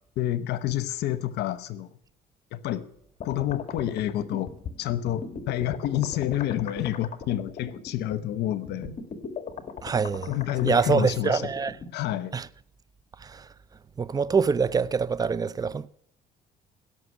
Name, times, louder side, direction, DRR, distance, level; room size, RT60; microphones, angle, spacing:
voice 1, 0.2-1.9 2.5-2.9 3.2-4.5 4.8-8.9 10.3-11.5 11.9-12.4, left 13 dB, 80° left, 0.9 m, -28 dB
sound 1, 3.2-11.9, left 5 dB, 45° left, 1.9 m, -38 dB
voice 2, 9.8-10.3 10.6-11.7 12.3-12.5 13.2-13.4 14.0-15.9, right 5 dB, 20° right, 0.5 m, -25 dB
17.0 x 6.7 x 9.6 m
cardioid pair, 110°, 17 cm